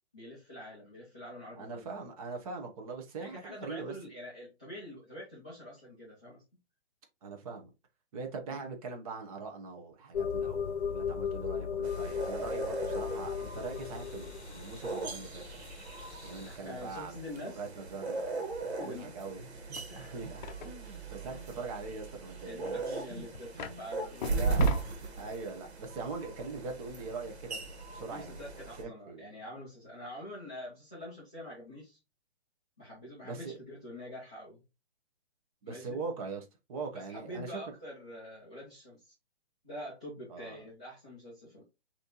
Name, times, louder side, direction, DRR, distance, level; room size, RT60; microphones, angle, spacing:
voice 1, 0.1-1.9 3.2-6.4 8.5-8.6 16.4-17.6 18.6-19.2 19.9-20.2 21.2-21.5 22.4-24.5 28.1-32.0 32.8-34.6 35.6-36.0 36.9-39.1 39.6-41.6, left 1 dB, 5° left, 0.3 m, -46 dB
voice 2, 1.6-4.0 7.2-7.7 8.1-15.5 16.2-17.2 17.4-18.3 18.8-23.3 23.5-23.8 24.3-24.7 25.2-27.6 27.9-28.4 28.8-29.2 33.2-33.5 35.6-37.7 40.3-40.6, right 4 dB, 35° right, 1.0 m, -42 dB
sound 1, 10.1-16.6, left 7 dB, 80° left, 0.7 m, -37 dB
sound 2, 11.8-28.8, right 3 dB, 70° right, 1.7 m, -38 dB
sound 3, 19.7-19.8 20.4-20.8 22.6-22.7 23.3-23.8 24.2-25.0, left 7 dB, 45° left, 0.6 m, -40 dB
6.1 x 2.9 x 3.0 m
hypercardioid pair, 155°, 33 cm